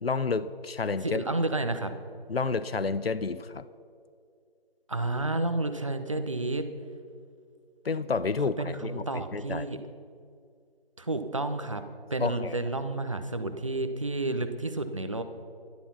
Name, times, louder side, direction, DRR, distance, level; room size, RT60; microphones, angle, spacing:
voice 1, 0.0-1.2 2.3-3.6 7.8-9.7 12.2-12.5, left 4 dB, 75° left, 15 dB, 0.7 m, -30 dB
voice 2, 1.0-1.9 4.9-6.7 8.6-9.8 11.0-11.8 12.1-15.2, right 2 dB, 35° right, 8 dB, 0.8 m, -30 dB
13.5 x 11.5 x 5.9 m, 2.3 s
figure-of-eight pair, 165°, 30 cm